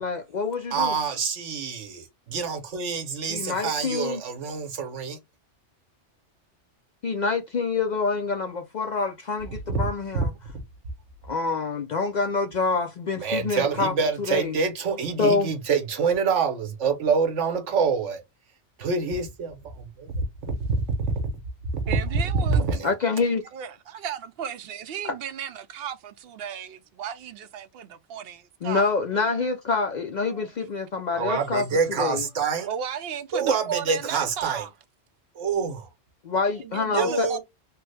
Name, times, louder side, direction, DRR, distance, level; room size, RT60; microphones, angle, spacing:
voice 1, 0.0-0.9 3.3-4.2 7.0-10.3 11.2-13.9 14.3-14.6 15.2-15.5 22.8-23.4 28.6-31.6 32.0-32.2 36.2-37.3, left 4 dB, 60° left, 0.5 m, -26 dB
voice 2, 0.7-5.2 9.7-9.8 10.1-10.3 13.2-18.2 18.8-20.5 21.7-21.9 22.5-22.9 31.1-32.7 33.3-34.6 35.3-35.9 36.9-37.4, right 5 dB, 85° right, 1.2 m, -26 dB
voice 3, 21.9-22.7 23.5-28.9 30.3-30.4 32.6-34.7 35.4-35.5 36.6-37.4, right 8 dB, 65° right, 0.7 m, -34 dB
3.3 x 2.1 x 3.2 m
omnidirectional pair, 1.2 m